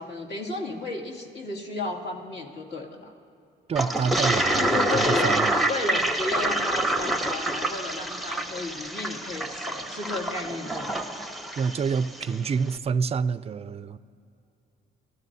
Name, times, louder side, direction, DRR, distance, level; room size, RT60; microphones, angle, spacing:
voice 1, 0.0-3.1 4.5-11.0, left 2 dB, 55° left, -2 dB, 2.5 m, -33 dB
voice 2, 3.7-5.6 11.6-14.0, right 5 dB, 30° right, 17 dB, 0.4 m, -28 dB
Toilet flush, 3.8-12.3, right 1 dB, ahead, 0.8 m, -27 dB
29.5 x 15.0 x 2.7 m, 2.7 s
cardioid pair, 90°, 20 cm